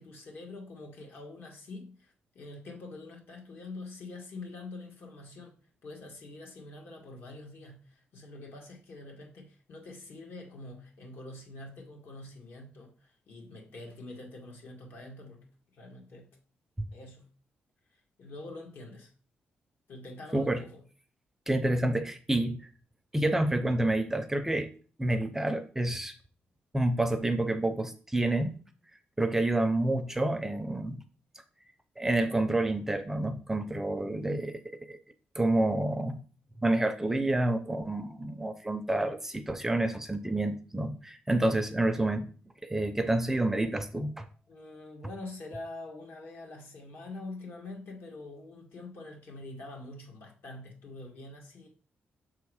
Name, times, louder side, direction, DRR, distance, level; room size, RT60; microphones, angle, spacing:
voice 1, 0.0-5.5 5.8-15.5 15.7-16.3 16.9-17.3 18.2-19.1 19.9-20.8 44.5-51.7, left 2 dB, 70° left, 1.8 m, -45 dB
voice 2, 21.5-22.7 23.1-24.7 25.0-26.1 26.7-28.5 29.2-31.0 32.0-34.6 34.9-35.0 35.3-36.2 36.6-42.3 42.6-44.3, right 1 dB, 10° right, 0.5 m, -28 dB
6.4 x 3.6 x 4.8 m
cardioid pair, 135°, 4 cm